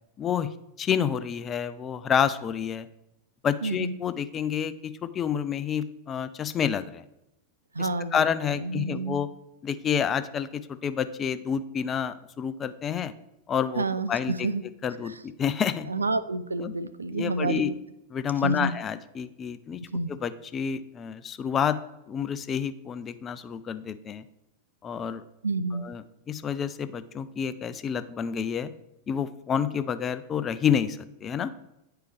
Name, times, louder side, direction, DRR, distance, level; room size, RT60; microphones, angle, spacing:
voice 1, 0.2-0.5 0.8-2.9 3.4-7.0 7.8-9.3 9.6-13.1 13.5-14.5 14.8-15.9 16.6-16.7 17.1-17.7 18.1-19.8 20.1-21.8 22.1-24.2 24.8-25.2 25.7-28.7 29.1-31.5, left 8 dB, 25° left, 13 dB, 0.4 m, -29 dB
voice 2, 3.6-4.0 7.7-8.3 8.6-9.2 13.8-14.6 15.9-17.7 18.4-18.7 19.9-20.1 25.4-25.8, right 3 dB, 75° right, 13 dB, 0.4 m, -29 dB
9.6 x 4.6 x 3.3 m, 0.89 s
figure-of-eight pair, 90°, 0 cm